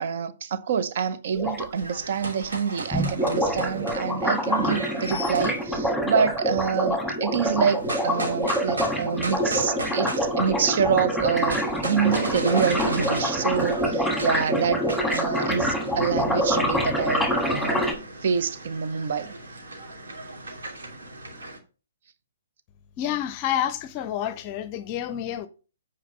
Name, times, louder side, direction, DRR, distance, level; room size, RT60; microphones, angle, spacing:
voice 1, 0.0-17.8 18.2-19.3, right 7 dB, 50° right, 0.9 m, -27 dB
sound 1, 1.4-1.7 2.9-17.9, equal, ahead, 2.0 m, -26 dB
sound 2, 1.8-5.7 7.7-10.8 11.0-21.6, right 1 dB, 65° right, 3.0 m, -36 dB
voice 2, 23.0-25.5, left 11 dB, 30° left, 0.6 m, -29 dB
8.5 x 5.3 x 5.4 m
figure-of-eight pair, 125°, 0 cm